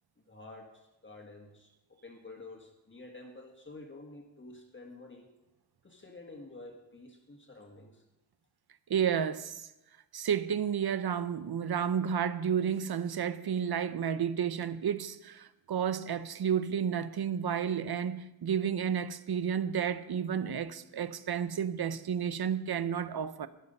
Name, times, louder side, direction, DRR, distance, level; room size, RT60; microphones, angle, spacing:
voice 1, 0.3-5.3 5.8-8.0, left 2 dB, 25° left, 1.7 m, -50 dB
voice 2, 8.9-9.7 10.1-23.5, right 8 dB, 55° right, 0.7 m, -31 dB
12.5 x 10.5 x 5.4 m
wide cardioid pair, 115°, 46 cm